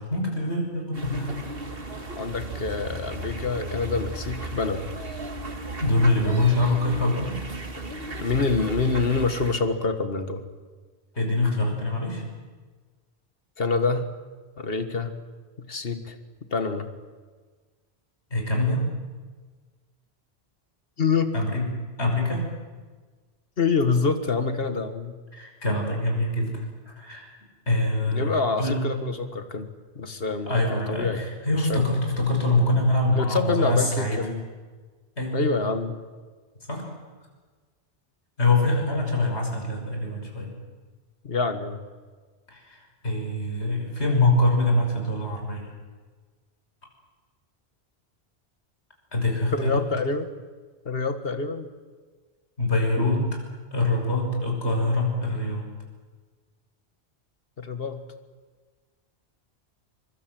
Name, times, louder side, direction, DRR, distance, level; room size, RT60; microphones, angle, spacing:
voice 1, 0.1-1.4 5.8-7.4 11.1-12.2 18.3-18.9 21.3-21.6 22.0-22.5 25.3-27.3 27.7-28.8 30.5-34.2 35.2-35.4 36.7-36.9 38.4-40.5 42.5-45.7 49.1-49.8 52.6-53.4 53.7-55.7, left 2 dB, 80° left, 1 dB, 6.1 m, -24 dB
sound 1, 0.9-9.5, right 1 dB, 60° right, 2.4 m, -35 dB
voice 2, 2.2-4.9 8.2-10.4 13.6-14.1 14.6-15.1 15.6-16.2 16.5-16.9 21.0-21.3 23.6-25.2 28.1-31.2 31.6-31.8 33.1-34.5 35.3-36.0 41.2-41.8 49.5-50.3 50.9-51.7 57.6-58.0, left 4 dB, 60° left, 9 dB, 2.0 m, -26 dB
24.0 x 24.0 x 7.8 m, 1.4 s
omnidirectional pair, 1.1 m